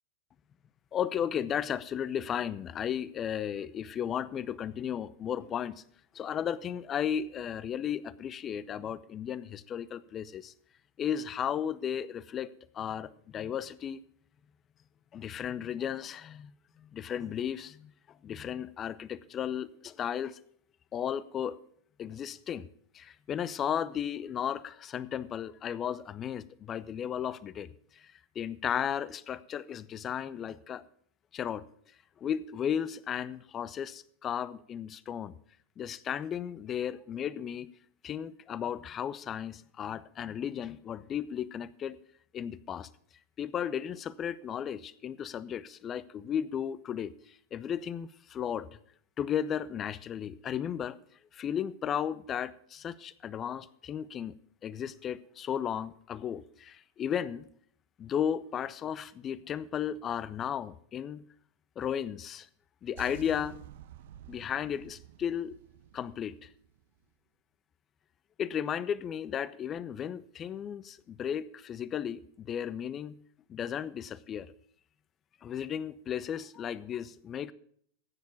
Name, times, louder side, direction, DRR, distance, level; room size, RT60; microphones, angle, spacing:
voice 1, 0.9-5.7 6.1-10.5 11.0-14.0 15.1-16.5 16.8-20.4 20.9-21.6 22.0-22.7 22.9-30.8 31.3-31.7 32.2-35.4 35.8-37.7 38.0-42.0 42.3-42.9 43.4-48.7 49.2-51.0 51.3-54.4 54.6-57.5 58.0-61.2 61.8-62.5 62.8-63.6 64.3-65.6 65.9-66.5 68.4-73.2 73.5-74.5 75.4-77.5, left 9 dB, 25° left, 0.7 m, -35 dB
sound 1, 63.0-67.0, right 12 dB, 55° right, 0.7 m, -50 dB
15.0 x 9.5 x 5.1 m
figure-of-eight pair, 90°, 0 cm